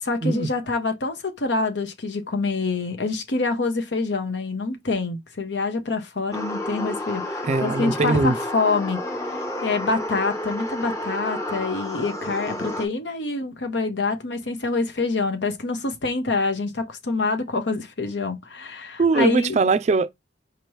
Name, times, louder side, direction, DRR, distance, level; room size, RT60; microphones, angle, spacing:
voice 1, 0.0-19.6, left 3 dB, 80° left, 0.9 m, -26 dB
sound 1, 6.3-12.9, left 1 dB, 15° left, 0.8 m, -30 dB
voice 2, 7.4-8.4 19.0-20.1, right 4 dB, 40° right, 0.4 m, -21 dB
4.9 x 3.0 x 3.2 m
head